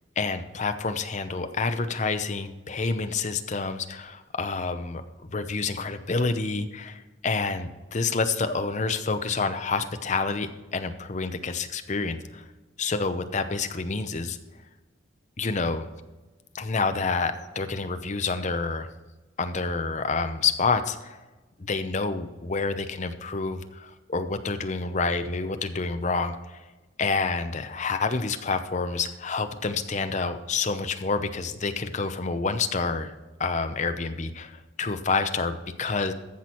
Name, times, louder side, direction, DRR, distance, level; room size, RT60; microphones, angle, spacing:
voice 1, 0.2-12.5 12.8-14.4 15.4-15.9 16.5-18.9 19.4-21.2 21.6-26.6 27.0-33.1 33.4-36.1, left 4 dB, 35° left, 9 dB, 0.7 m, -28 dB
14.5 x 6.1 x 4.4 m, 1.2 s
head